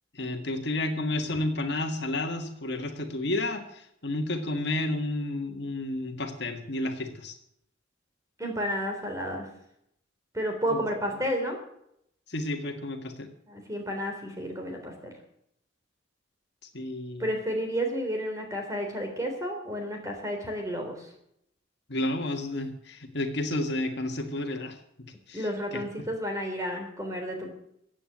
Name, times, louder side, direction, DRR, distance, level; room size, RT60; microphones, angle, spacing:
voice 1, 0.1-7.3 10.7-10.8 12.3-13.3 16.7-17.3 21.9-24.8 25.3-25.8, left 1 dB, 60° left, 5 dB, 1.8 m, -31 dB
voice 2, 8.4-9.5 10.3-11.6 13.5-14.9 17.2-21.1 25.3-27.5, equal, 15° right, 3 dB, 3.4 m, -31 dB
15.0 x 9.0 x 7.9 m, 0.73 s
head